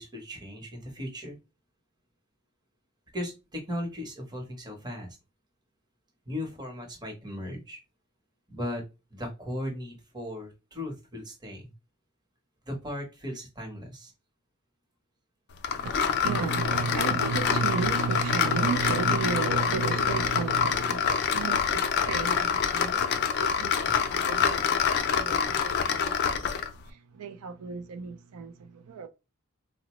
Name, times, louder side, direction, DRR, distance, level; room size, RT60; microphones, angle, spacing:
voice 1, 0.0-1.4 3.1-5.2 6.3-7.8 8.5-8.8 9.1-11.7 12.7-14.1, left 1 dB, 20° right, 0.9 m, -37 dB
sound 1, 15.6-26.7, left 7 dB, 50° left, 0.4 m, -26 dB
voice 2, 15.7-29.1, right 4 dB, 80° right, 0.4 m, -33 dB
3.7 x 2.1 x 3.0 m
head